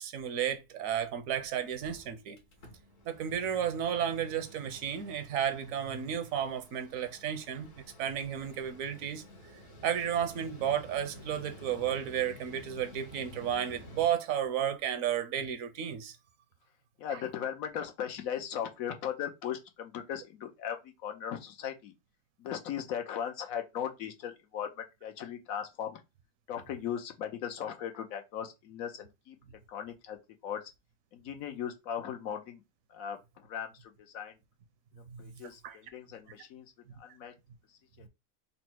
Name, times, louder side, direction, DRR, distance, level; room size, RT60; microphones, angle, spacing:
voice 1, 0.0-2.4 3.1-9.2 9.8-16.2 35.1-35.3 35.6-35.8 36.9-37.0, right 9 dB, 80° right, 1.1 m, -33 dB
Mechanical fan, 1.0-1.1 1.4-1.5 1.7-14.1, equal, 70° left, 1.3 m, -52 dB
voice 2, 17.0-21.9 22.4-26.0 26.5-29.4 29.7-30.2 30.4-30.7 31.1-32.6 32.9-34.4 35.0-36.7 37.0-37.3 38.0-38.1, left 9 dB, 85° left, 1.2 m, -38 dB
4.1 x 2.1 x 4.4 m
omnidirectional pair, 1.4 m